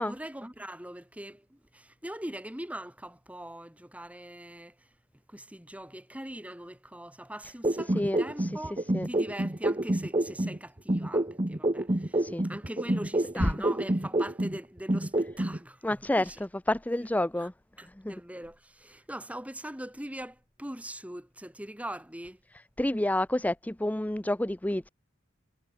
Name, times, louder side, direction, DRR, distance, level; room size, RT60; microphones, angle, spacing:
voice 1, 0.0-4.9 5.3-16.4 17.4-17.5 17.8-22.4, right 1 dB, 5° right, 3.4 m, -42 dB
sound 1, 7.6-10.6 10.9-14.6 14.9-15.6, right 1 dB, 25° right, 1.2 m, -28 dB
voice 2, 8.0-8.5 8.9-9.1 12.2-12.5 13.4-13.5 15.8-16.3 16.7-17.5 18.0-18.1 22.8-24.9, left 1 dB, 10° left, 0.6 m, -28 dB
head